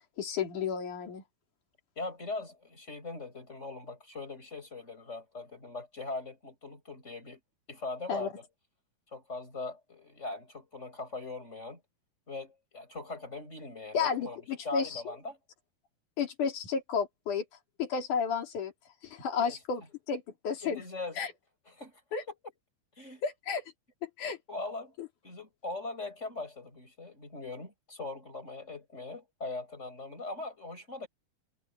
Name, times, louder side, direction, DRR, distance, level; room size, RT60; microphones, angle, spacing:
voice 1, 0.2-1.2 8.1-8.3 13.9-15.1 16.2-17.5 17.8-18.7 19.0-20.8 21.2-21.3 22.1-22.2 23.2-23.7 24.0-24.4 25.0-25.1, left 6 dB, 55° left, 4.7 m, -32 dB
voice 2, 2.0-7.4 7.7-8.3 9.1-11.8 12.3-15.4 19.4-19.6 20.6-21.2 21.8-21.9 23.0-23.2 24.5-24.9 25.2-31.1, left 3 dB, 15° left, 6.1 m, -40 dB
omnidirectional pair, 4.5 m